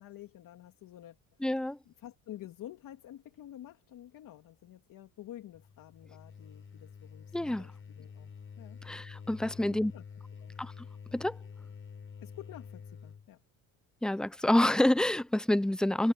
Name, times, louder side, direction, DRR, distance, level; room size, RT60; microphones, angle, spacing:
voice 1, 0.0-8.3 8.6-8.8 9.4-10.0 10.4-10.5 12.2-13.4, left 13 dB, 55° left, 2.9 m, -50 dB
voice 2, 1.4-1.8 7.3-7.7 8.9-9.9 10.6-10.7 11.1-11.4 14.0-16.1, left 1 dB, ahead, 0.7 m, -27 dB
sound 1, 5.5-13.3, left 6 dB, 35° left, 5.0 m, -48 dB
supercardioid pair, 95°, 38 cm